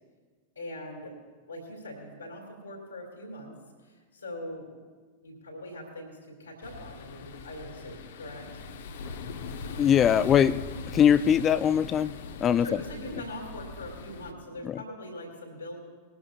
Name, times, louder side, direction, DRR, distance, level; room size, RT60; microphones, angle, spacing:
voice 1, 0.6-1.1 1.5-3.5 3.8-4.7 5.2-8.5 12.6-15.8, left 1 dB, 80° left, 0 dB, 2.4 m, -41 dB
sound 1, 6.6-14.3, left 4 dB, 60° left, 0.8 m, -40 dB
voice 2, 9.8-10.6 10.9-12.1 12.4-12.8 14.6-14.8, left 9 dB, 25° left, 17 dB, 0.3 m, -21 dB
20.0 x 13.5 x 2.4 m, 1.5 s
figure-of-eight pair, 90°, 0 cm